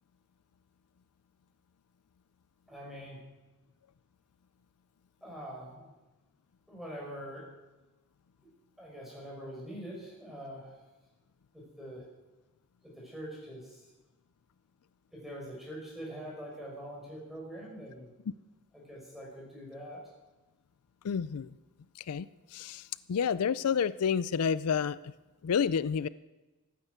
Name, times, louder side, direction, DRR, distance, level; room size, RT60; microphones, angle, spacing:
voice 1, 2.7-3.2 5.2-5.9 6.7-7.4 8.4-8.5 8.8-10.8 11.5-12.0 12.8-13.9 15.1-18.1 18.7-20.0, equal, ahead, -4 dB, 5.3 m, -44 dB
voice 2, 21.0-21.5 22.1-22.3 22.5-25.1 25.4-26.1, left 7 dB, 90° left, 18 dB, 0.4 m, -29 dB
13.5 x 9.3 x 8.1 m, 1.1 s
head